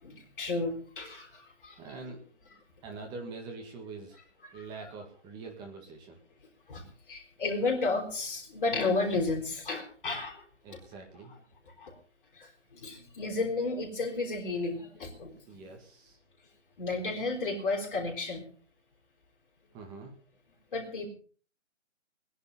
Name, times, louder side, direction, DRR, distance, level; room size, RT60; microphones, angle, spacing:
voice 1, 0.0-1.8 6.7-10.4 11.8-11.9 12.3-15.3 16.8-18.4 20.7-21.1, left 3 dB, 40° left, -4 dB, 4.7 m, -32 dB
voice 2, 1.8-2.2 2.5-4.2 4.5-6.2 10.6-11.3 15.5-16.2 19.7-20.1, right 4 dB, 10° right, 2 dB, 1.9 m, -44 dB
20.0 x 11.0 x 5.6 m, 0.43 s
figure-of-eight pair, 155°, 37 cm